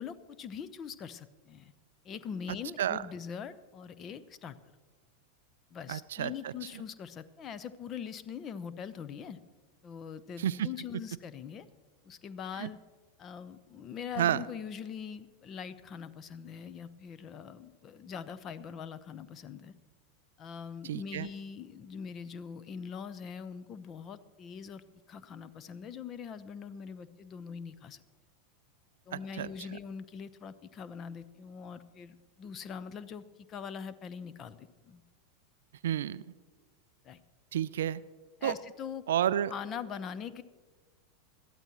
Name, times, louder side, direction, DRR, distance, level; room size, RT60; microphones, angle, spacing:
voice 1, 0.0-1.7 2.0-4.6 5.7-9.4 9.8-11.7 12.0-12.8 13.2-19.7 20.4-28.0 29.1-35.0 37.0-37.2 38.4-39.1 39.5-40.4, left 7 dB, 30° left, 14 dB, 0.7 m, -42 dB
voice 2, 5.9-6.5 10.4-10.7 12.6-12.7 14.2-14.4 20.8-21.3 29.1-29.5 35.8-36.2 37.5-38.0 38.4-38.5 39.1-39.5, right 11 dB, 65° right, 18 dB, 0.3 m, -30 dB
21.0 x 13.5 x 3.0 m, 1.4 s
figure-of-eight pair, 85°, 0 cm